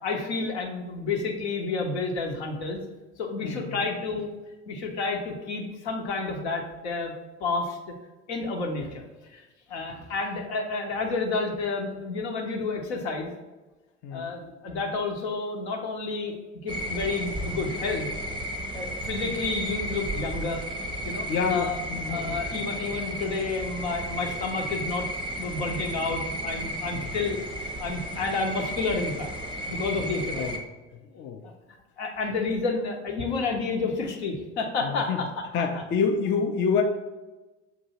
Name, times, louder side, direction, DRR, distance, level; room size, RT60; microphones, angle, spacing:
voice 1, 0.0-2.8 3.2-4.3 4.7-7.1 7.4-7.8 8.3-13.3 14.1-16.3 16.6-18.1 18.7-20.6 21.0-21.8 22.1-25.1 25.4-27.4 27.8-29.3 29.7-30.6 31.4-31.5 32.0-35.3, left 3 dB, 70° left, 2 dB, 0.8 m, -30 dB
voice 2, 3.4-3.9 14.0-14.3 21.3-22.7 26.9-27.2 29.6-29.8 30.3-30.6 30.9-31.4 34.8-35.3 35.5-36.8, left 5 dB, 35° left, 4 dB, 0.5 m, -28 dB
sound 1, 16.7-30.6, equal, 15° right, 0.6 m, -33 dB
6.8 x 2.6 x 2.8 m, 1.1 s
figure-of-eight pair, 60°, 35 cm